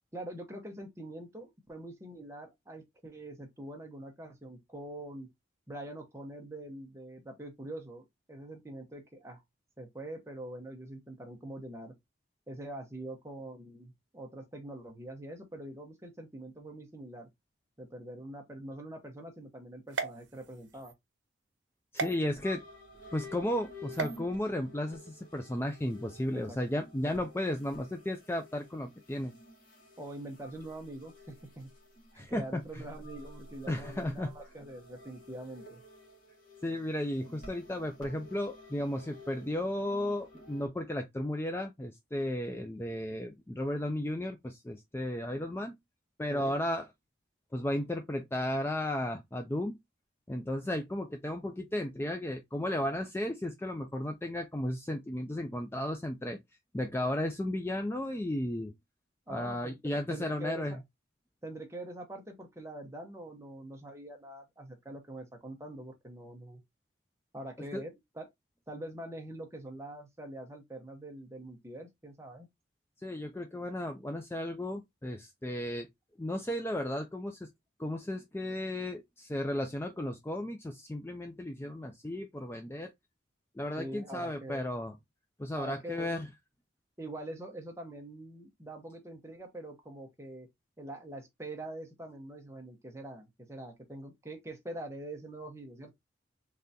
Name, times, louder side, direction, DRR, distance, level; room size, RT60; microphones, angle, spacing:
voice 1, 0.1-5.3 5.7-9.4 9.8-11.9 12.5-17.3 17.8-20.9 26.3-26.6 27.0-27.2 30.0-31.7 32.1-35.8 46.3-46.6 59.3-60.8 61.4-66.6 67.3-68.3 68.7-72.5 83.8-84.6 85.6-86.2 87.0-90.5 90.8-95.9, right 1 dB, 15° right, 0.8 m, -44 dB
sound 1, 19.9-20.9 22.0-22.1 23.9-24.2, right 4 dB, 80° right, 0.8 m, -36 dB
voice 2, 21.9-22.6 23.1-29.3 32.1-32.8 33.7-34.3 36.6-45.8 46.2-46.8 47.5-49.8 50.3-56.4 56.7-58.7 59.3-60.8 67.7-67.8 73.0-75.9 76.2-77.5 77.8-82.9 83.6-84.9 85.4-86.3, left 1 dB, 10° left, 0.3 m, -34 dB
sound 2, 22.1-40.7, left 1 dB, 45° left, 1.6 m, -51 dB
3.7 x 3.3 x 2.7 m
head